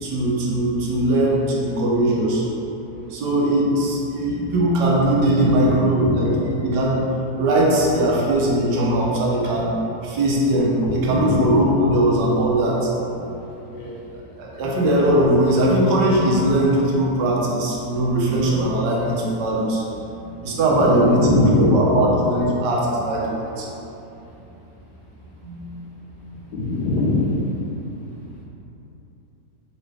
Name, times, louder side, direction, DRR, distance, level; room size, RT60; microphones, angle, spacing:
voice 1, 0.0-2.4 3.1-6.3 6.6-7.1 7.4-9.7 10.0-12.9 13.2-13.3 14.4-19.8 20.1-21.3 21.5-23.7 25.4-25.7, right 1 dB, 85° right, -3 dB, 1.3 m, -20 dB
voice 2, 5.2-5.7 6.0-6.2 8.9-9.0 11.1-11.5 13.7-13.9 20.7-22.0 26.5-27.4, left 2 dB, 80° left, -5 dB, 1.4 m, -22 dB
3.9 x 3.2 x 3.2 m, 2.9 s
omnidirectional pair, 1.8 m